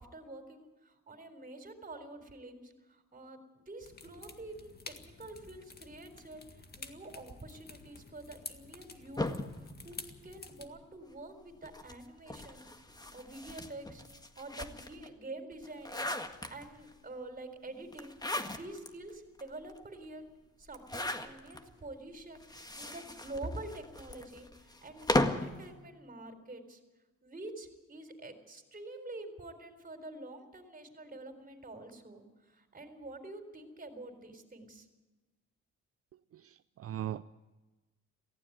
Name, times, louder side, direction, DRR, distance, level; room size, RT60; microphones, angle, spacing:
voice 1, 0.0-6.4 6.8-9.3 9.8-14.0 14.4-16.1 16.5-18.2 18.5-20.2 20.6-26.8 27.2-34.9, right 2 dB, 30° right, 7 dB, 4.0 m, -47 dB
sound 1, 3.8-10.7, left 4 dB, 30° left, 1.9 m, -50 dB
sound 2, 9.2-10.8 11.6-15.1 15.5-16.9 17.9-18.9 19.4-19.5 19.7-19.8 20.7-21.6 22.4-25.6, left 1 dB, 15° left, 1.7 m, -36 dB
voice 2, 36.3-37.2, right 11 dB, 50° right, 13 dB, 0.6 m, -39 dB
18.0 x 15.5 x 9.3 m, 1.2 s
cardioid pair, 90°, 30 cm